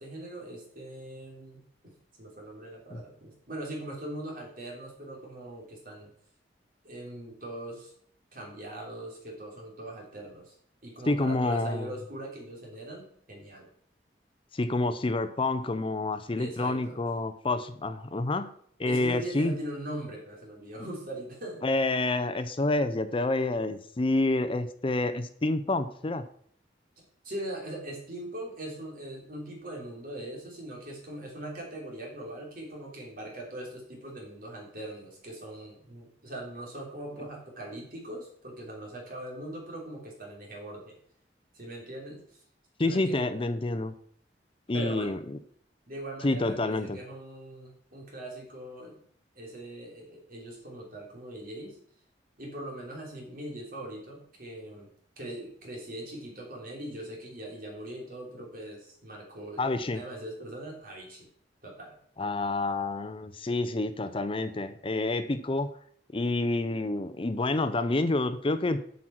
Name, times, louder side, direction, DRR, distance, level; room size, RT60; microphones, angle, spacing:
voice 1, 0.0-1.9 2.2-6.1 6.8-7.9 8.3-10.5 10.8-13.7 16.4-17.0 18.8-21.6 27.0-40.9 41.5-42.2 42.8-43.3 44.7-45.2 45.9-49.0 49.4-51.8 52.4-54.9 55.2-59.6 59.9-61.3 61.6-62.0, right 1 dB, 55° right, -1 dB, 3.2 m, -41 dB
voice 2, 11.1-11.9 14.5-18.5 18.8-19.6 21.6-26.2 42.8-43.9 44.7-45.4 46.2-47.0 59.6-60.0 62.2-65.7 66.1-68.8, left 2 dB, 30° left, 11 dB, 0.6 m, -28 dB
8.2 x 6.3 x 5.9 m, 0.62 s
head